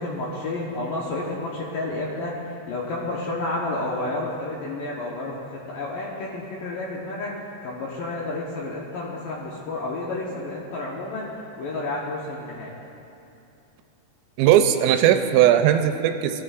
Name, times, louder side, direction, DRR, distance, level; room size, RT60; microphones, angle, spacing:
voice 1, 0.0-12.7, left 2 dB, 75° left, -4 dB, 2.1 m, -31 dB
voice 2, 14.4-16.4, right 11 dB, 85° right, 7 dB, 2.7 m, -18 dB
20.5 x 13.5 x 2.5 m, 2.7 s
omnidirectional pair, 5.2 m